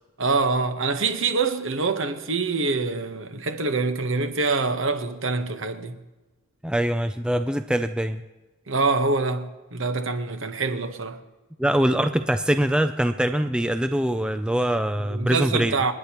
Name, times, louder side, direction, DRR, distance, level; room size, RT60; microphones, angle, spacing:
voice 1, 0.2-5.9 8.7-11.2 15.0-15.9, right 3 dB, 65° right, 1.2 m, -25 dB
voice 2, 6.6-8.2 11.6-15.8, right 1 dB, 5° right, 0.4 m, -23 dB
29.0 x 9.8 x 3.0 m
head